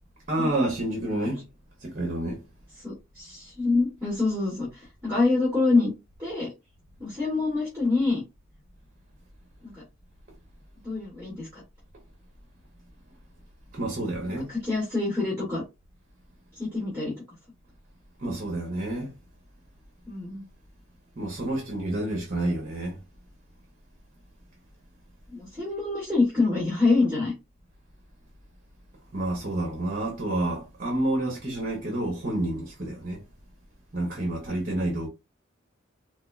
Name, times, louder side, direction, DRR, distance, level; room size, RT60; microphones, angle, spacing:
voice 1, 0.3-1.4 1.8-2.4 13.7-14.5 18.2-19.1 21.2-23.0 29.1-33.2 33.9-35.1, right 1 dB, 40° right, 1.0 m, -29 dB
voice 2, 2.8-5.9 6.2-6.5 7.0-8.2 9.6-9.7 10.8-11.6 14.5-15.6 16.6-17.1 20.1-20.4 25.3-27.3, left 3 dB, 10° right, 2.1 m, -26 dB
4.6 x 2.3 x 2.3 m
head